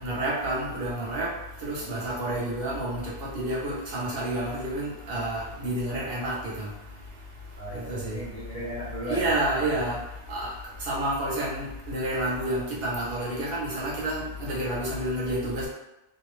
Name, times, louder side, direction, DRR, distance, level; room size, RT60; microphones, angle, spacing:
voice 1, 0.0-1.3 1.6-6.7 7.9-8.2 9.1-10.0 10.3-10.5 10.8-15.7, right 1 dB, 60° right, -5 dB, 1.0 m, -29 dB
voice 2, 7.6-9.8, right 1 dB, 20° right, -10 dB, 0.9 m, -37 dB
2.8 x 2.0 x 3.0 m, 0.93 s
omnidirectional pair, 1.1 m